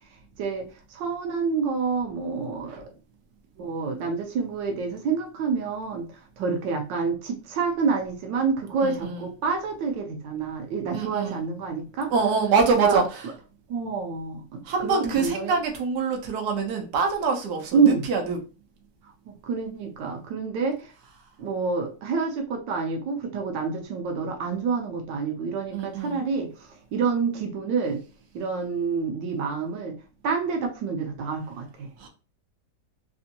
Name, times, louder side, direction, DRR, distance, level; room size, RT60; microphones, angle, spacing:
voice 1, 0.4-2.8 3.6-12.1 12.7-13.0 13.7-15.5 17.7-18.1 19.3-20.9 21.4-28.0 28.3-30.0 30.2-31.9, right 5 dB, 90° right, 3 dB, 1.3 m, -28 dB
voice 2, 8.8-9.2 10.9-11.4 12.1-13.2 14.6-18.4 25.7-26.3 32.0-32.1, right 4 dB, 70° right, 2 dB, 1.3 m, -25 dB
3.5 x 2.5 x 2.7 m, 0.33 s
omnidirectional pair, 1.9 m